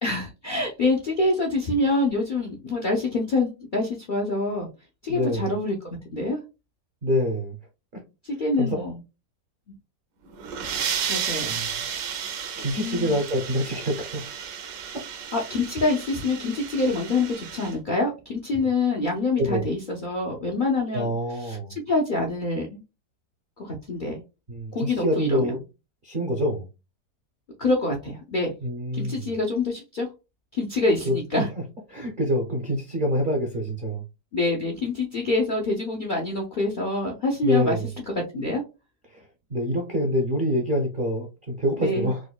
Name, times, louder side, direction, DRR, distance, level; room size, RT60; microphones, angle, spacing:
voice 1, 0.0-4.7 5.0-6.4 8.2-9.0 11.1-11.5 12.8-13.2 14.6-14.7 15.3-21.6 21.9-22.8 23.6-24.2 24.7-25.6 27.6-28.5 28.9-30.1 30.5-31.5 34.3-37.8 38.2-38.6 41.8-42.1, left 2 dB, 85° left, 0.4 m, -26 dB
voice 2, 5.1-5.5 7.0-7.6 7.9-8.0 8.6-8.7 11.5-11.7 12.6-14.2 14.9-15.0 19.4-19.6 20.9-21.8 24.5-25.6 26.0-26.7 28.6-29.4 31.0-31.5 31.9-34.0 37.4-37.9 39.1-39.2 39.5-42.2, equal, 50° right, 0.5 m, -26 dB
sound 1, 10.3-17.7, right 8 dB, 70° right, 1.2 m, -33 dB
4.7 x 2.2 x 2.3 m
omnidirectional pair, 1.8 m